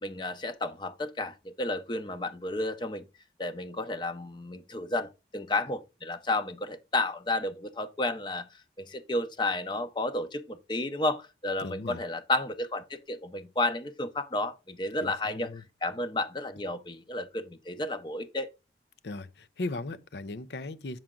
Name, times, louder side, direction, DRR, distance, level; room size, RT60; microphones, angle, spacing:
voice 1, 0.0-3.1 3.4-8.5 8.8-18.5, left 2 dB, 25° left, 0.6 m, -32 dB
voice 2, 11.6-12.0 15.0-15.6 19.0-21.0, left 2 dB, 75° left, 0.7 m, -37 dB
7.5 x 5.8 x 3.7 m
head